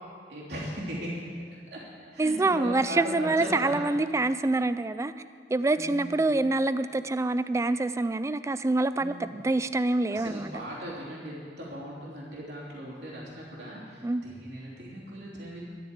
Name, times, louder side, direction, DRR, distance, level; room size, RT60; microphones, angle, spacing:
voice 1, 0.3-1.2 1.7-1.8 2.1-3.8 5.7-6.2 8.9-9.4 10.1-15.6, equal, 65° right, -6 dB, 3.1 m, -38 dB
voice 2, 2.2-5.1 5.5-10.5 14.0-14.2, right 2 dB, 15° right, 13 dB, 0.3 m, -26 dB
12.5 x 6.8 x 9.5 m, 2.1 s
head